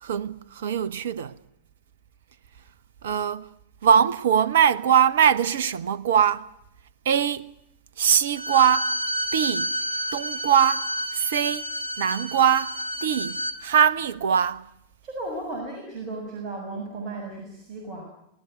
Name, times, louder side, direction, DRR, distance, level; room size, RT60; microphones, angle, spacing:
voice 1, 0.0-1.4 3.0-3.5 3.8-6.5 7.0-7.6 8.0-8.9 9.3-9.8 10.1-11.7 12.0-14.7, right 8 dB, 60° right, 1.0 m, -22 dB
Bowed string instrument, 8.3-13.6, equal, 75° right, 2.8 m, -30 dB
voice 2, 15.0-18.0, right 2 dB, 30° right, 6.7 m, -35 dB
26.0 x 18.5 x 9.4 m
figure-of-eight pair, 90°, 0 cm